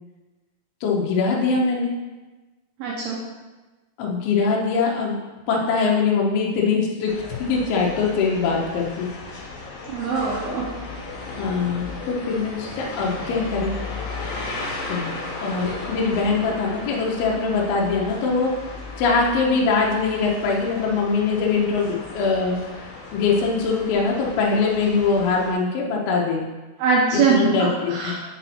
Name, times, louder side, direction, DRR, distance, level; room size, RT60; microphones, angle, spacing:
voice 1, 0.8-1.9 4.0-5.2 5.5-9.1 11.3-13.7 14.9-15.1 15.4-18.5 19.0-26.4 27.1-28.1, left 4 dB, 85° left, -2 dB, 2.1 m, -22 dB
voice 2, 2.8-3.2 9.9-10.6 26.8-27.4 27.9-28.1, right 5 dB, 75° right, -4 dB, 2.4 m, -21 dB
sound 1, 7.1-25.5, left 3 dB, 65° left, 2.6 m, -35 dB
6.5 x 4.2 x 4.2 m, 1.2 s
omnidirectional pair, 5.5 m